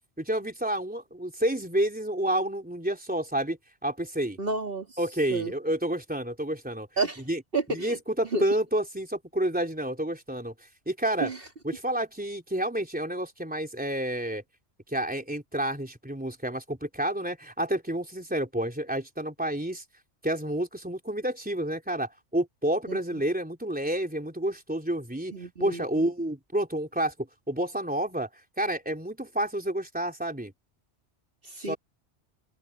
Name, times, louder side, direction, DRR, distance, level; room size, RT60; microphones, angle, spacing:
voice 1, 0.2-3.6 3.8-4.4 5.0-6.9 7.3-7.4 7.7-10.5 10.9-11.3 11.6-14.4 14.9-19.8 20.2-25.3 25.6-28.3 28.6-30.5 31.6-31.8, right 1 dB, 5° right, 3.6 m, -29 dB
voice 2, 4.4-5.0 5.3-5.5 7.0-7.2 7.5-7.9 8.3-8.4 11.2-11.4 22.9-23.0 25.3-26.1 31.4-31.8, right 3 dB, 55° right, 3.3 m, -30 dB
omnidirectional pair, 1.2 m